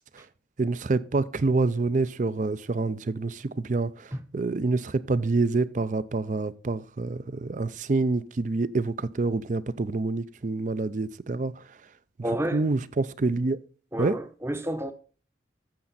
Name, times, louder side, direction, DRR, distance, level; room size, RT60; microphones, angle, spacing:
voice 1, 0.6-11.6 12.5-13.6 14.0-14.2, right 3 dB, 40° right, 0.4 m, -27 dB
voice 2, 12.2-12.6 13.9-14.9, right 1 dB, 15° right, 0.8 m, -30 dB
11.5 x 7.6 x 4.1 m
head